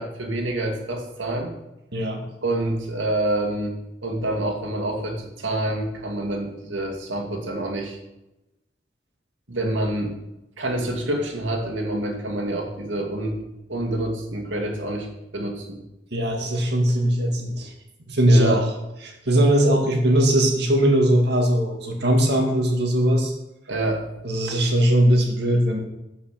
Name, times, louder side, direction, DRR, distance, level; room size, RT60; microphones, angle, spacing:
voice 1, 0.0-1.6 2.4-3.7 4.0-8.0 9.5-10.1 10.6-13.4 13.7-15.1 15.3-15.8 18.3-18.7 23.7-24.0, right 1 dB, 90° right, 1 dB, 2.4 m, -27 dB
voice 2, 1.9-2.2 16.1-17.7 18.1-18.7 19.0-23.3 24.2-25.8, right 1 dB, 60° right, 2 dB, 2.2 m, -20 dB
11.5 x 5.7 x 6.7 m, 0.92 s
head